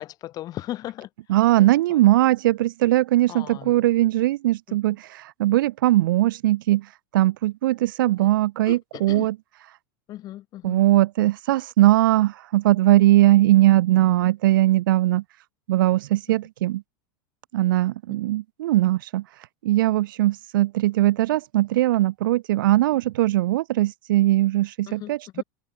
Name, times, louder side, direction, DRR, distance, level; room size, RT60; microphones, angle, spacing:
voice 1, 0.0-2.1 3.3-4.0 4.7-5.0 8.2-8.3 8.6-9.3 10.1-10.8 16.3-16.4 24.9-25.4, left 14 dB, 35° left, 7.2 m, -38 dB
voice 2, 1.3-6.9 7.1-9.3 10.6-15.2 15.7-16.8 17.5-19.2 19.6-25.4, right 15 dB, 90° right, 0.5 m, -20 dB
supercardioid pair, 145°, 11 cm